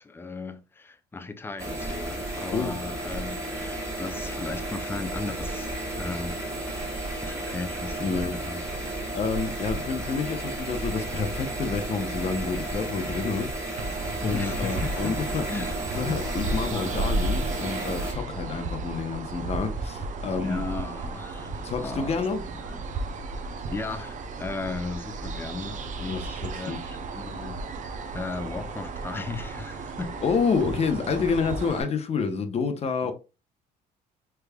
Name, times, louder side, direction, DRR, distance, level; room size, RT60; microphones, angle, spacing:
voice 1, 0.0-8.6 14.2-16.1 16.6-17.1 20.4-22.8 23.4-30.2 30.5-30.7 33.0-33.1, left 3 dB, 15° left, 0.4 m, -37 dB
sound 1, 1.6-18.1, right 1 dB, 15° right, 1.3 m, -33 dB
voice 2, 8.0-8.3 8.7-8.8 9.1-13.5 14.2-15.4 15.9-20.6 21.6-22.4 26.1-26.2 26.6-26.8 30.2-33.1, left 5 dB, 40° left, 0.8 m, -28 dB
sound 2, 13.8-31.8, right 3 dB, 50° right, 0.5 m, -34 dB
3.4 x 3.2 x 2.3 m
cardioid pair, 110°, 17 cm